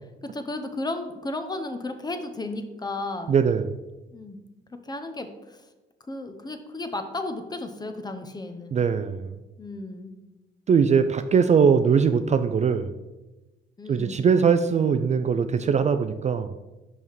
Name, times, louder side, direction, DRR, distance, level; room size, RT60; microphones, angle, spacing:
voice 1, 0.3-3.4 4.1-4.4 4.7-5.6 6.0-8.9 9.6-10.1 13.8-14.3, left 2 dB, 20° left, 7 dB, 0.7 m, -34 dB
voice 2, 3.3-3.7 8.7-9.3 10.7-12.9 13.9-16.5, right 6 dB, 35° right, 9 dB, 0.4 m, -21 dB
5.5 x 5.5 x 4.7 m, 1.1 s
cardioid pair, 90°, 20 cm